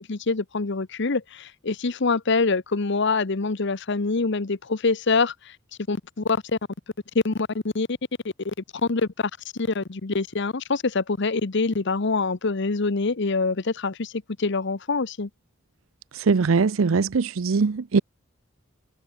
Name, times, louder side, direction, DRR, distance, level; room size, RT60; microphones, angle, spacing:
voice 1, 0.1-5.5 5.9-6.4 7.2-7.5 7.7-7.9 8.4-8.5 8.9-9.3 9.6-14.1 14.4-15.3, left 4 dB, 60° left, 0.9 m, -25 dB
voice 2, 16.1-18.0, right 4 dB, 85° right, 0.6 m, -21 dB
head